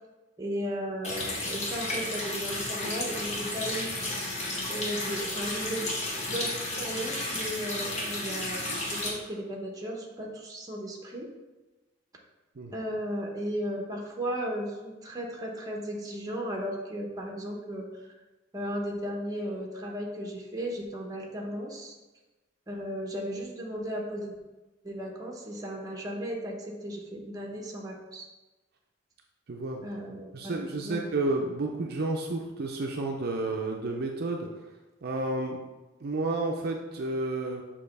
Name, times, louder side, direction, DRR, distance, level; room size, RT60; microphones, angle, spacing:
voice 1, 0.4-3.9 4.7-5.8 6.3-11.3 12.7-18.1 18.5-22.0 22.7-24.4 24.8-28.3 29.8-31.1, equal, 20° right, 0 dB, 1.0 m, -35 dB
Water tap faucet, 1.0-9.1, left 1 dB, 35° left, 1.3 m, -33 dB
voice 2, 29.5-29.8 30.3-34.5 35.0-35.6 36.0-37.6, right 2 dB, 55° right, 1 dB, 0.5 m, -31 dB
6.6 x 2.9 x 5.3 m, 1.1 s
head